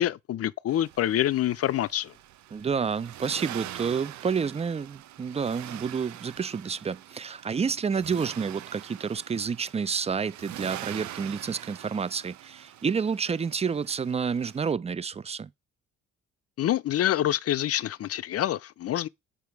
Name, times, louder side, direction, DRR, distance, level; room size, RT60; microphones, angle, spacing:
voice 1, 0.0-2.1 16.6-19.1, left 12 dB, 50° left, 0.5 m, -26 dB
Accelerating revving vroom, 0.7-14.7, right 13 dB, 70° right, 0.6 m, -44 dB
voice 2, 2.5-15.5, right 6 dB, 20° right, 0.4 m, -29 dB
6.9 x 5.9 x 4.6 m
cardioid pair, 90°, 30 cm